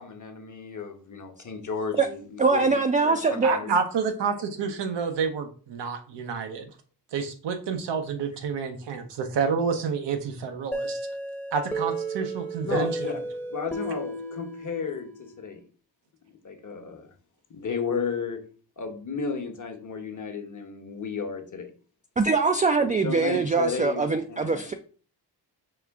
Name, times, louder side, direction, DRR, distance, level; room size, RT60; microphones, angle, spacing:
voice 1, 0.0-3.8 12.6-13.2 13.5-15.6 16.4-17.1 17.5-18.4 18.8-21.7 22.8-24.7, left 5 dB, 45° left, 5 dB, 1.0 m, -33 dB
voice 2, 2.4-3.5 22.2-24.7, right 4 dB, 20° right, 6 dB, 0.3 m, -23 dB
voice 3, 3.4-6.7 7.1-11.0 11.5-13.1, right 5 dB, 85° right, 6 dB, 0.8 m, -29 dB
sound 1, 10.7-15.4, right 2 dB, 5° left, 0.7 m, -33 dB
4.9 x 2.5 x 3.5 m, 0.41 s
cardioid pair, 65°, 41 cm